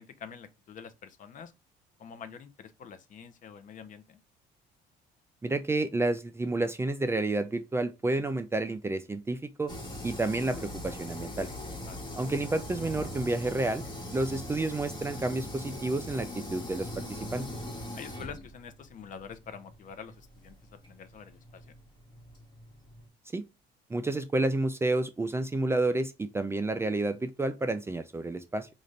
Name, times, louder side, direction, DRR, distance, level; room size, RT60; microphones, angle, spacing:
voice 1, 0.0-1.5 2.0-4.2 11.9-12.0 17.9-21.7, left 7 dB, 50° left, 0.7 m, -46 dB
voice 2, 5.4-9.7 10.0-11.5 12.1-13.8 14.1-17.5 23.3-23.4 23.9-28.7, right 2 dB, 15° right, 0.4 m, -30 dB
sound 1, 9.7-23.1, left 1 dB, 25° left, 1.3 m, -41 dB
4.0 x 2.5 x 3.2 m
cardioid pair, 110°, 17 cm